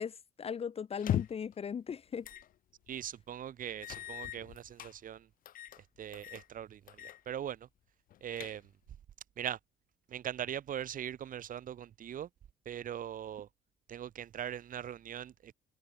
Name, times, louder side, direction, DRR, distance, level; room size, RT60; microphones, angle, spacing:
voice 1, 0.0-2.3, left 7 dB, 35° left, 1.3 m, -38 dB
sound 1, 0.9-1.5 2.2-2.5 2.9-3.0 3.8-4.9 5.4-5.8 6.1-6.5 6.9-7.2 7.5-7.6 8.1-8.9, left 12 dB, 55° left, 0.9 m, -38 dB
voice 2, 2.9-5.3 6.0-7.7 8.2-8.7 9.4-9.6 10.1-12.3 12.6-13.5 13.9-15.5, right 10 dB, 55° right, 6.2 m, -41 dB
cardioid pair, 110°, 17 cm